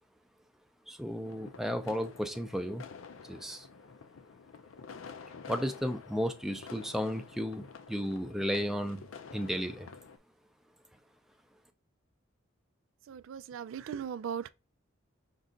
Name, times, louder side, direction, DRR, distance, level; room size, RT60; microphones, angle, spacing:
voice 1, 0.9-2.9 3.2-3.7 5.5-9.0 9.3-9.9, equal, ahead, 0.4 m, -34 dB
sound 1, 1.2-10.2, left 5 dB, 80° left, 0.5 m, -49 dB
voice 2, 13.1-14.5, right 8 dB, 75° right, 0.3 m, -38 dB
5.3 x 2.4 x 3.8 m
head